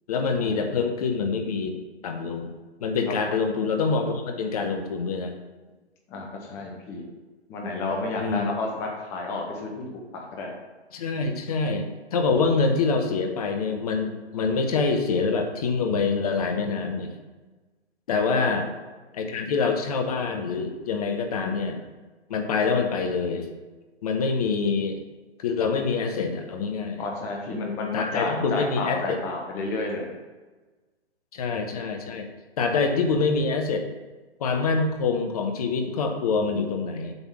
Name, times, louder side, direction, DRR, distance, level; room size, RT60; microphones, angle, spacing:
voice 1, 0.1-1.8 2.0-2.5 2.8-5.3 8.2-8.5 10.9-11.9 12.1-17.1 18.1-18.7 19.1-21.8 22.3-23.5 24.0-25.0 25.4-27.0 27.9-29.2 31.3-32.3 32.6-33.8 34.4-37.1, left 4 dB, 35° left, 5 dB, 0.9 m, -25 dB
voice 2, 6.1-7.0 7.5-9.8 10.1-10.5 18.4-18.5 27.0-30.1, left 3 dB, 10° left, 1 dB, 0.5 m, -31 dB
8.0 x 3.5 x 6.0 m, 1.3 s
figure-of-eight pair, 130°, 33 cm